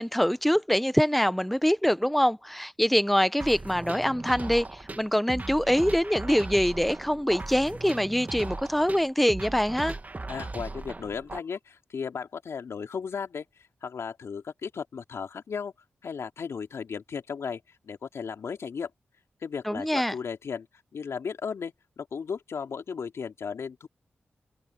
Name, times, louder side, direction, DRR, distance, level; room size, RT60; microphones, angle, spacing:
voice 1, 0.0-10.0 19.7-20.1, equal, ahead, 0.8 m, -24 dB
sound 1, 3.4-11.4, right 2 dB, 35° right, 1.3 m, -38 dB
voice 2, 10.3-13.5 13.8-15.7 16.0-18.9 19.4-20.7 20.9-23.9, left 6 dB, 75° left, 2.9 m, -35 dB
open air
cardioid pair, 40°, 5 cm